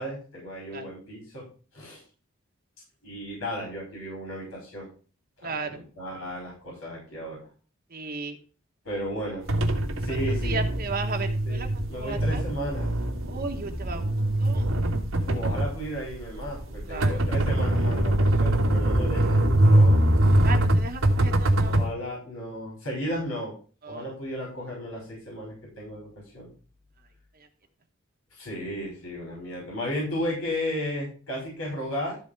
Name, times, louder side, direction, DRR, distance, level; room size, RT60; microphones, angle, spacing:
voice 1, 0.0-1.5 1.7-2.0 3.0-4.9 5.4-7.5 8.8-9.5 10.0-10.9 11.4-12.9 15.3-20.0 21.6-23.5 23.9-26.5 28.3-32.2, equal, 90° left, -3 dB, 5.6 m, -34 dB
voice 2, 7.9-8.4 10.4-11.7 12.0-12.4 13.3-14.1 14.4-14.6 16.9-17.3 20.4-21.7 23.9-24.0, right 4 dB, 45° right, 4 dB, 1.2 m, -34 dB
sound 1, 9.5-21.9, right 1 dB, 75° right, 1.6 m, -23 dB
13.5 x 4.5 x 5.3 m, 0.38 s
head